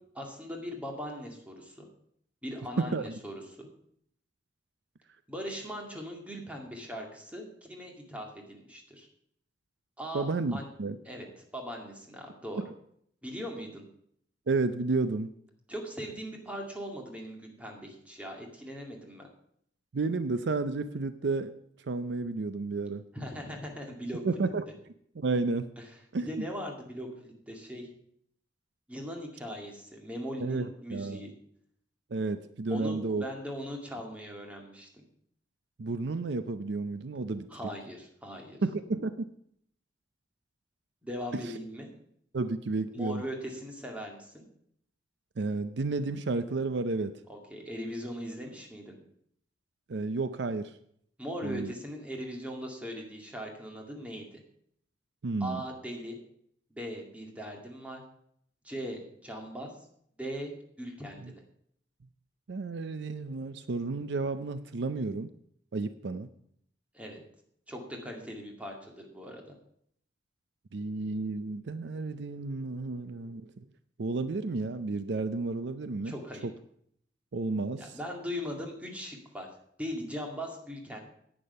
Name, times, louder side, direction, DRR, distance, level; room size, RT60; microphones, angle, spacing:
voice 1, 0.2-1.9 2.4-3.7 5.3-9.1 10.0-10.7 11.1-11.3 11.5-12.6 13.2-13.8 15.7-19.3 23.1-24.2 25.8-25.9 26.3-27.9 28.9-31.3 32.7-34.9 37.5-38.6 41.0-41.9 42.9-44.5 47.3-49.0 51.2-54.4 55.4-56.2 56.7-58.0 58.6-59.7 60.2-61.4 66.9-67.2 67.7-69.5 76.0-76.5 77.8-79.5 79.8-81.0, equal, 10° right, 1 dB, 2.1 m, -39 dB
voice 2, 2.8-3.2 10.1-11.0 12.6-12.7 14.5-15.3 19.9-21.5 21.8-23.0 24.2-24.6 25.2-25.7 26.1-26.4 30.4-31.3 32.1-33.2 35.8-37.5 38.6-39.3 41.4-41.5 42.3-43.2 45.4-47.1 49.9-50.8 51.4-51.7 55.2-55.6 61.2-61.3 62.5-65.3 65.7-66.3 70.7-73.6 74.0-76.2 76.4-76.5 77.3-78.0, right 3 dB, 70° right, 12 dB, 0.5 m, -32 dB
10.0 x 8.9 x 5.4 m, 0.68 s
head